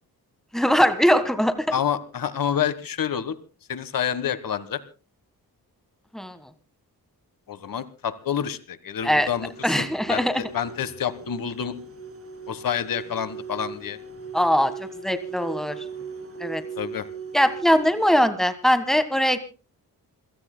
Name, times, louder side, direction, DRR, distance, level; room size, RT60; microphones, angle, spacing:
voice 1, 0.5-1.7 6.1-6.5 9.0-9.3 9.6-10.4 14.3-15.8 16.4-16.6 17.3-19.4, equal, ahead, 10 dB, 1.5 m, -21 dB
voice 2, 1.7-3.3 3.7-4.8 7.5-9.5 9.8-11.7 12.5-14.0 16.8-17.1, left 8 dB, 65° left, 14 dB, 1.5 m, -28 dB
sound 1, 9.0-18.1, right 5 dB, 40° right, 3.0 m, -39 dB
27.5 x 17.0 x 2.2 m, 0.35 s
wide cardioid pair, 180°, 36 cm